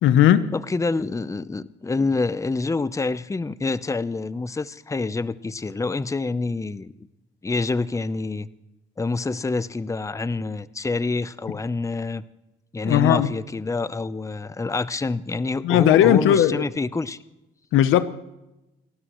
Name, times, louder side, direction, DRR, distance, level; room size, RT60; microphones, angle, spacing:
voice 1, 0.0-0.5 12.8-13.3 15.6-16.7 17.7-18.1, left 11 dB, 90° left, 0.9 m, -17 dB
voice 2, 0.5-7.1 7.4-8.5 9.0-12.2 12.7-17.2, left 3 dB, 15° left, 0.7 m, -27 dB
29.5 x 12.5 x 3.1 m
cardioid pair, 90°, 20 cm